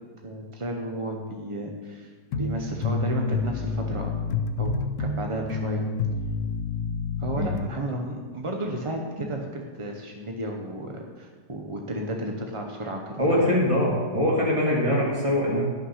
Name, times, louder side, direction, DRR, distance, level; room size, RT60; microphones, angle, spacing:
voice 1, 0.2-2.1 2.4-4.1 4.6-4.7 5.0-5.9 7.2-13.6, right 1 dB, 45° right, 1 dB, 0.4 m, -33 dB
sound 1, 2.3-7.6, left 4 dB, 80° left, 1.3 m, -28 dB
voice 2, 13.2-15.7, left 1 dB, 20° right, -5 dB, 2.5 m, -23 dB
11.5 x 5.7 x 5.6 m, 1.5 s
omnidirectional pair, 1.9 m